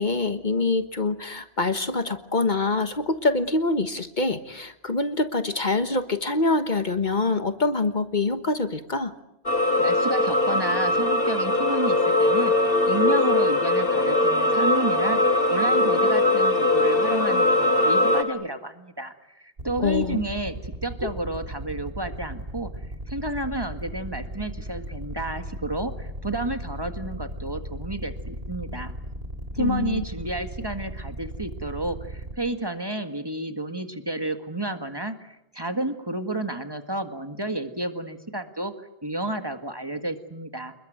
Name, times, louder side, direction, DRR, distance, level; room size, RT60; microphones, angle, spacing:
voice 1, 0.0-9.1 19.8-20.2 21.0-21.1 29.6-30.0, left 3 dB, 50° left, 10 dB, 1.5 m, -25 dB
sound 1, 9.5-18.2, left 2 dB, 65° left, 2.6 m, -21 dB
voice 2, 9.8-22.7 23.1-28.9 29.5-38.7 39.0-40.7, right 1 dB, 25° right, 8 dB, 1.9 m, -31 dB
sound 2, 19.6-32.3, right 1 dB, 70° right, 3.9 m, -36 dB
28.0 x 21.5 x 9.4 m, 0.84 s
omnidirectional pair, 1.0 m